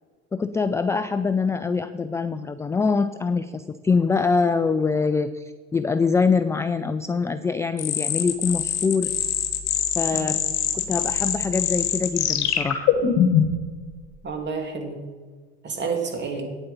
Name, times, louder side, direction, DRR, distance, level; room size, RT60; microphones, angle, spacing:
voice 1, 0.3-9.1 10.0-10.4 10.7-12.9, left 4 dB, 10° left, 11 dB, 0.3 m, -24 dB
sound 1, 7.8-13.6, left 9 dB, 50° left, 1.6 m, -23 dB
voice 2, 10.1-10.4 14.2-15.0 15.6-16.5, right 5 dB, 35° right, 3 dB, 2.4 m, -30 dB
9.2 x 7.7 x 5.4 m, 1.5 s
hypercardioid pair, 80°, 33 cm